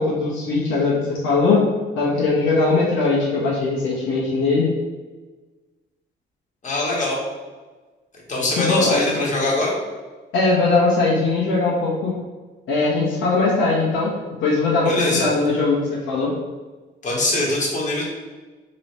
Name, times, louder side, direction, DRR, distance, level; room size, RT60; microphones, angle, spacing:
voice 1, 0.0-1.6 2.0-4.7 8.4-9.3 10.3-12.1 12.7-14.1 14.4-16.3, left 3 dB, 90° left, -6 dB, 1.2 m, -20 dB
voice 2, 6.6-7.2 8.3-9.7 14.8-15.3 17.0-18.0, left 2 dB, 40° left, -4 dB, 1.4 m, -22 dB
3.1 x 3.0 x 4.2 m, 1.3 s
cardioid pair, 90°, 20 cm